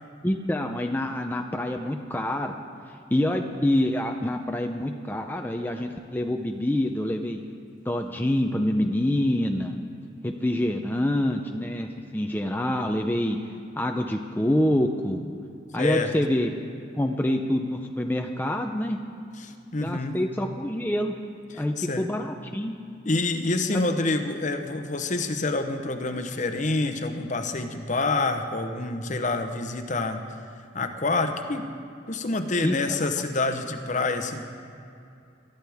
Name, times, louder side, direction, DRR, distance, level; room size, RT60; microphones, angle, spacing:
voice 1, 0.2-2.5 2.8-7.4 7.9-9.8 10.2-13.4 13.8-15.2 15.7-16.5 16.9-19.0 19.8-21.2 21.5-22.7 32.6-33.0, left 1 dB, 10° left, 3 dB, 0.6 m, -26 dB
voice 2, 15.8-16.1 19.4-20.2 21.5-22.1 23.0-30.2 30.7-31.7 32.1-34.4, left 2 dB, 40° left, 7 dB, 0.9 m, -27 dB
23.0 x 13.0 x 3.6 m, 2.6 s
head